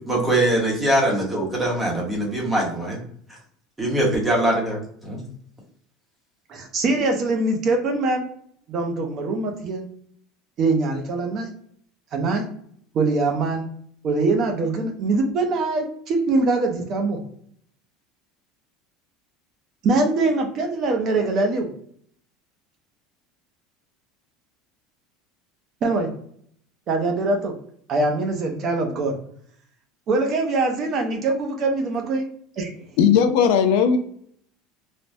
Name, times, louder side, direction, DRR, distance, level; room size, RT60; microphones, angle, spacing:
voice 1, 0.1-3.0 3.8-5.2, right 1 dB, 10° right, -2 dB, 0.8 m, -22 dB
voice 2, 6.5-8.3 8.7-9.9 10.6-11.5 12.1-12.4 12.9-13.7 14.0-17.2 19.8-21.7 25.8-26.1 26.9-27.5 27.9-29.1 30.1-32.3 32.6-32.7, right 3 dB, 35° right, 4 dB, 0.5 m, -23 dB
voice 3, 33.0-34.0, left 7 dB, 65° left, 7 dB, 0.4 m, -17 dB
3.3 x 2.0 x 2.5 m, 0.62 s
cardioid pair, 165°, 0 cm